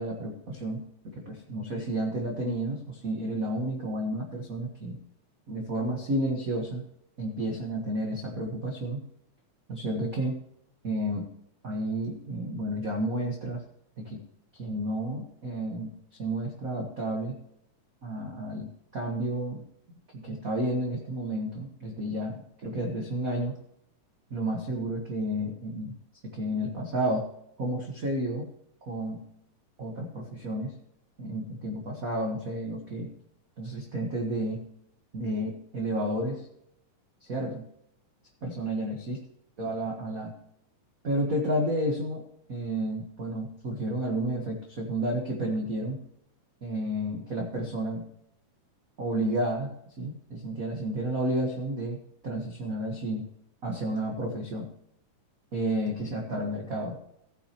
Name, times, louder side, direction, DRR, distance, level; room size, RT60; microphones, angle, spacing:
voice 1, 0.0-5.0 5.5-6.8 7.2-9.0 9.7-10.3 10.8-11.3 11.6-13.6 14.0-14.2 14.5-15.9 16.2-17.4 18.0-19.6 20.1-23.6 24.3-25.9 26.2-27.3 27.6-28.5 28.8-29.2 29.8-30.7 31.2-33.1 33.6-34.6 35.1-36.4 37.2-37.6 38.4-39.2 39.6-40.3 41.0-42.2 42.5-46.0 46.6-48.0 49.0-49.7 50.0-52.0 52.2-53.3 53.6-54.7 55.5-57.0, right 1 dB, 40° right, 0 dB, 1.2 m, -31 dB
15.5 x 8.9 x 3.1 m, 0.75 s
omnidirectional pair, 3.6 m